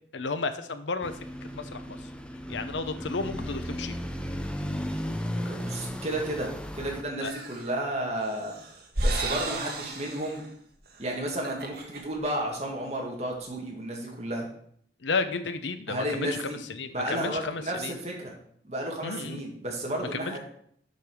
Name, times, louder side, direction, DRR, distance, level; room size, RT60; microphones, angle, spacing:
voice 1, 0.1-1.1 1.5-2.0 2.5-4.0 7.2-7.3 15.0-18.0 19.0-19.4 20.2-20.4, left 4 dB, 90° left, 10 dB, 0.8 m, -32 dB
sound 1, 1.0-7.0, equal, 5° left, 0.6 m, -35 dB
voice 2, 5.4-8.5 9.0-10.4 11.0-14.5 15.9-16.6 16.9-18.3 18.6-20.4, right 1 dB, 35° right, 0 dB, 2.1 m, -32 dB
sound 2, 7.2-7.7 8.2-10.5 10.9-11.0 11.3-12.0, right 1 dB, 55° right, 1.5 m, -32 dB
7.7 x 5.3 x 6.2 m, 0.65 s
head